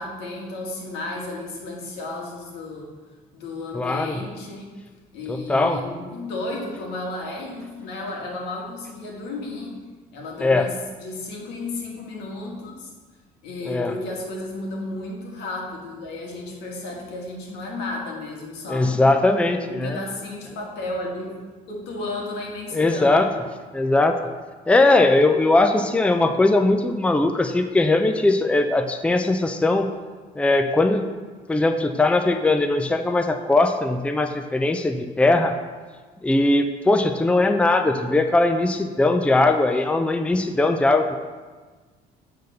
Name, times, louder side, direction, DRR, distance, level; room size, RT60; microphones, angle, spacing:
voice 1, 0.0-2.9 3.3-4.7 5.1-9.8 10.1-12.9 13.4-19.1 19.6-21.4 21.7-23.3, left 2 dB, 90° left, -1 dB, 2.0 m, -33 dB
voice 2, 3.7-4.2 5.3-5.8 10.4-10.7 13.6-13.9 18.7-20.0 22.7-23.3 23.7-24.2 24.7-29.9 30.4-31.1 31.5-35.6 36.2-41.2, left 2 dB, 5° left, 7 dB, 0.5 m, -20 dB
8.5 x 4.1 x 6.5 m, 1.4 s
cardioid pair, 110°, 17 cm